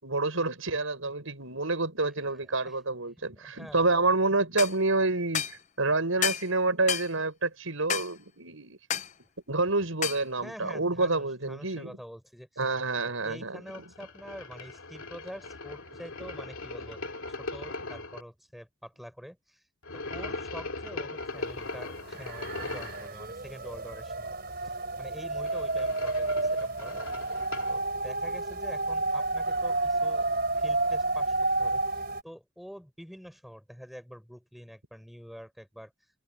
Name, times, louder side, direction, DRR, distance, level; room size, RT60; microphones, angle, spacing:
voice 1, 0.0-8.8 9.5-12.0 12.6-13.6, right 3 dB, 75° right, 5.4 m, -28 dB
voice 2, 2.3-2.8 3.2-4.1 10.4-12.6 13.0-17.0 17.4-19.7 19.9-24.3 24.6-27.0 27.3-27.4 27.7-30.3 30.6-35.9, equal, ahead, 4.7 m, -46 dB
sound 1, 4.6-4.8 5.3-5.6 6.2-6.5 6.9-7.1 7.9-8.1 8.9-9.1 10.0-10.2, left 8 dB, 35° left, 0.6 m, -30 dB
sound 2, 13.7-18.2 19.8-23.1 25.2-27.8, left 2 dB, 85° left, 2.4 m, -39 dB
sound 3, 21.6-21.7 22.0-32.2, right 2 dB, 45° right, 3.9 m, -30 dB
head